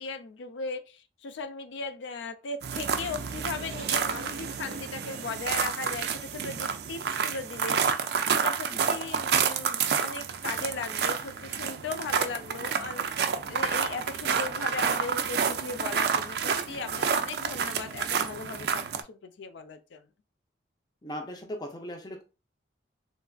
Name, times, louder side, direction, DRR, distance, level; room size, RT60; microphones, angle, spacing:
voice 1, 0.0-7.8 8.3-20.1, left 4 dB, 75° left, 0.4 m, -38 dB
sound 1, 2.6-19.0, right 6 dB, 60° right, 0.3 m, -29 dB
voice 2, 21.0-22.2, equal, 20° left, 0.5 m, -38 dB
3.2 x 2.4 x 2.2 m
head